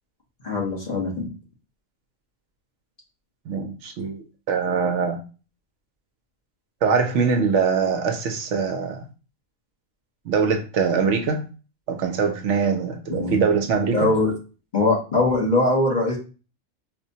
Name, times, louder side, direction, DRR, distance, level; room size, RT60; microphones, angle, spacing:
voice 1, 0.4-1.3 13.1-13.4 13.9-14.3 14.7-16.2, left 2 dB, 40° left, -2 dB, 1.1 m, -21 dB
voice 2, 3.5-5.2 6.8-9.0 10.3-11.4 11.9-14.1, right 5 dB, 70° right, 5 dB, 0.8 m, -23 dB
4.4 x 2.1 x 2.7 m, 0.34 s
omnidirectional pair, 1.3 m